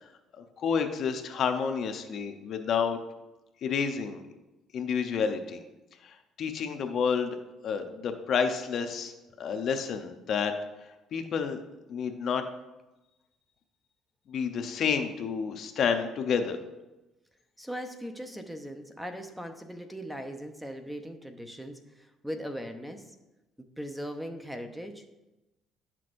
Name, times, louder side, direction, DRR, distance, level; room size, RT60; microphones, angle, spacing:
voice 1, 0.4-3.0 3.6-4.2 4.7-5.6 6.0-7.4 7.6-10.5 11.1-11.6 11.9-12.4 14.3-16.6, left 6 dB, 55° left, 7 dB, 0.7 m, -29 dB
voice 2, 17.6-23.0 23.6-25.0, equal, 5° right, 6 dB, 0.7 m, -39 dB
10.5 x 6.1 x 2.5 m, 1.0 s
cardioid pair, 105°, 0 cm